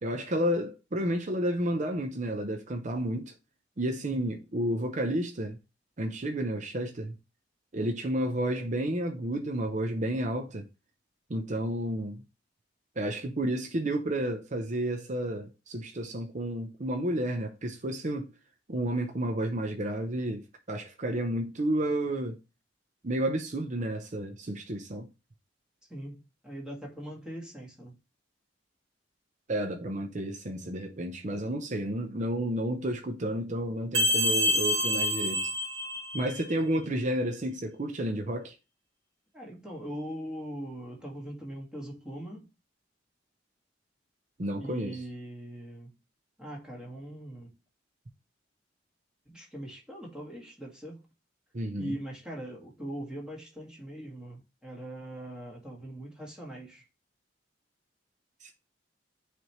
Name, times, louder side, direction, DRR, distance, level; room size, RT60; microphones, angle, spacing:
voice 1, 0.0-3.3 3.8-5.6 6.0-7.1 7.7-10.7 11.3-12.2 13.0-18.3 18.7-22.4 23.0-25.1 29.5-35.5 36.1-38.5 44.4-45.0 51.5-52.0 58.4-58.5, right 1 dB, 40° right, 0.7 m, -31 dB
voice 2, 25.9-28.0 36.7-36.9 39.3-42.5 44.6-46.0 46.4-47.6 49.2-51.0 51.7-56.8, right 1 dB, 5° right, 1.8 m, -41 dB
sound 1, 33.9-36.5, equal, 75° right, 1.3 m, -27 dB
9.2 x 3.4 x 3.1 m
head